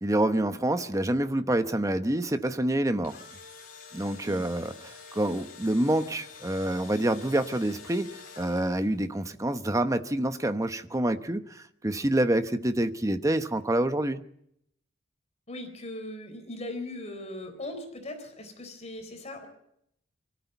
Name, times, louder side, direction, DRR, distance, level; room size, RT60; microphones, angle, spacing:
voice 1, 0.0-3.2 3.9-14.2, right 1 dB, 15° right, 1.0 m, -27 dB
Engine / Drill, 2.8-9.0, left 5 dB, 50° left, 3.9 m, -48 dB
voice 2, 15.5-19.5, left 1 dB, 35° left, 3.9 m, -39 dB
24.5 x 14.0 x 8.1 m
head